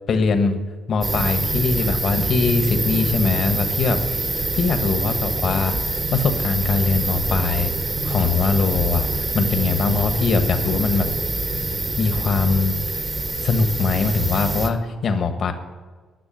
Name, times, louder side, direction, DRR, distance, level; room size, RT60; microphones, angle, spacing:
voice 1, 0.1-0.6 0.9-7.7 8.0-11.1 12.0-12.7 13.4-15.5, left 4 dB, 60° left, 8 dB, 1.3 m, -22 dB
sound 1, 1.0-14.7, right 2 dB, 30° right, 1.4 m, -25 dB
10.5 x 6.3 x 9.0 m, 1.4 s
supercardioid pair, 65°, 0 cm